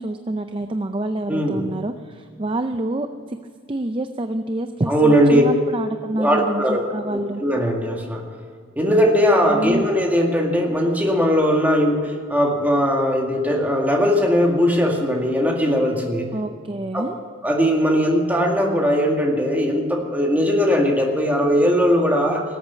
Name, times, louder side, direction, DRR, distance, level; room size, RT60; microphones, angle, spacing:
voice 1, 0.0-3.4 3.7-7.4 9.5-9.9 16.3-17.2, right 1 dB, 25° right, 8 dB, 0.5 m, -27 dB
voice 2, 1.3-1.6 4.9-5.5 6.2-8.3 8.8-16.3 16.9-17.1 17.4-22.4, equal, 10° right, 0 dB, 2.0 m, -19 dB
19.0 x 8.5 x 8.3 m, 2.1 s
head